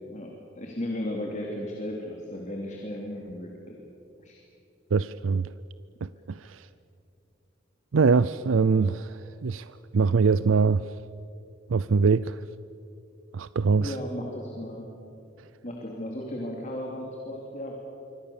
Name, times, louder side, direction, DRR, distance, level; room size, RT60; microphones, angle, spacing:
voice 1, 0.5-3.8 4.2-4.4 13.8-14.8 15.6-17.7, left 1 dB, 40° left, 0 dB, 3.0 m, -35 dB
voice 2, 4.9-5.5 6.0-6.1 6.5-6.6 7.9-9.7 9.9-10.8 11.7-12.4 13.3-13.9, right 4 dB, 85° right, 15 dB, 0.5 m, -23 dB
26.5 x 24.5 x 7.1 m, 2.7 s
head